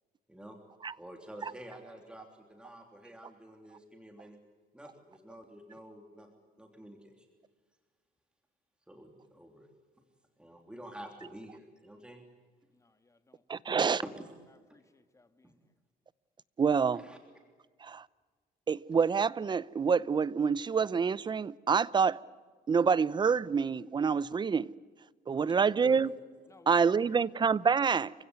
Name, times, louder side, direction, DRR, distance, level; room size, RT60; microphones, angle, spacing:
voice 1, 1.0-4.4 4.7-6.3 6.6-7.3 8.9-9.7 10.4-12.2 14.0-14.2 15.4-15.5 16.9-17.2 25.6-26.0, right 1 dB, 5° right, 3.2 m, -48 dB
voice 2, 12.7-13.4 14.7-15.6 26.5-27.3, left 3 dB, 15° left, 1.9 m, -62 dB
voice 3, 13.5-14.0 16.6-17.0 17.8-18.1 18.7-22.2 22.7-24.7 25.3-26.1 26.7-28.1, right 6 dB, 25° right, 0.7 m, -27 dB
29.0 x 16.5 x 9.6 m
cardioid pair, 110°, 17 cm